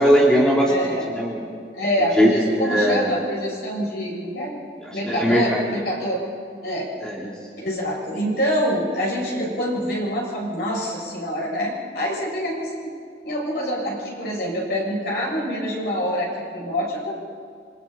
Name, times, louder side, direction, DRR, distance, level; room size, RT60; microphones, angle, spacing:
voice 1, 0.0-1.5 2.1-3.1 4.9-5.8 7.0-7.3, equal, 5° left, -4 dB, 2.7 m, -20 dB
voice 2, 0.7-1.1 1.7-4.5 4.9-6.2 6.6-6.9 7.6-12.9 13.2-17.1, equal, 65° left, -4 dB, 7.5 m, -26 dB
27.5 x 25.0 x 4.3 m, 2.2 s
head